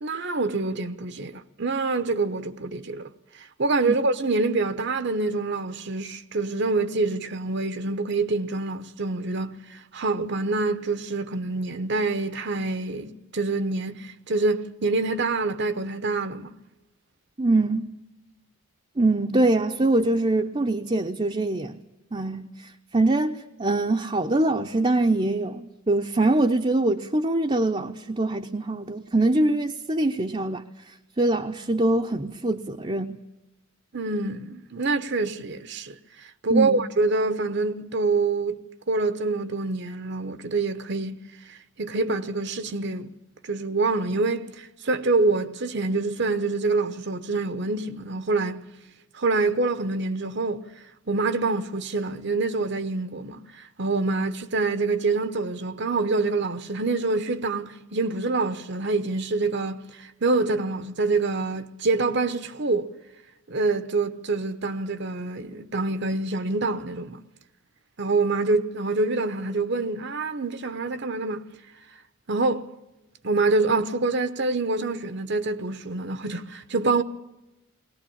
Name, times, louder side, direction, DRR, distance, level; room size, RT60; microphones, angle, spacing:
voice 1, 0.0-3.1 3.4-16.5 33.9-38.6 38.9-41.2 41.5-43.1 43.4-48.6 49.1-50.6 51.1-62.9 63.5-67.2 68.0-71.5 72.3-72.6 73.2-77.0, right 3 dB, 55° right, 0.9 m, -26 dB
voice 2, 17.4-17.9 19.0-21.7 22.1-30.6 31.2-33.2 36.5-36.8, right 2 dB, 25° right, 0.7 m, -23 dB
22.0 x 18.5 x 8.6 m
head